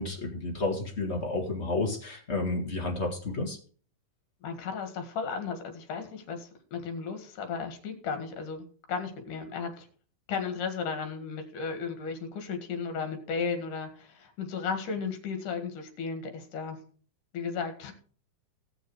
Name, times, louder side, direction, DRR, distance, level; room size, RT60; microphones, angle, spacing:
voice 1, 0.0-3.6, left 2 dB, 25° left, 2 dB, 1.5 m, -31 dB
voice 2, 4.4-9.9 10.3-16.8 17.3-17.9, left 5 dB, 65° left, 6 dB, 3.3 m, -35 dB
18.0 x 6.4 x 4.8 m, 0.43 s
omnidirectional pair, 4.0 m